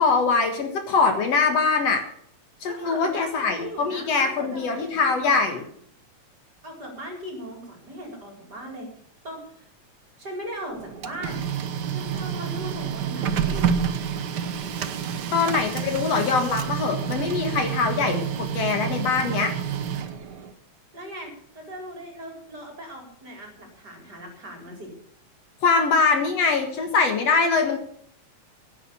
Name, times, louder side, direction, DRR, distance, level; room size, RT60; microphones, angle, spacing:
voice 1, 0.0-2.0 2.6-5.7 15.3-19.5 25.6-27.8, left 4 dB, 60° left, 5 dB, 2.6 m, -23 dB
voice 2, 2.6-5.7 6.6-8.9 9.2-9.7 10.2-11.5 11.9-13.6 20.9-24.9, equal, 35° right, 1 dB, 4.7 m, -39 dB
Printer, 10.7-20.5, right 7 dB, 75° right, 1.0 m, -28 dB
16.5 x 8.8 x 6.9 m, 0.64 s
omnidirectional pair, 3.3 m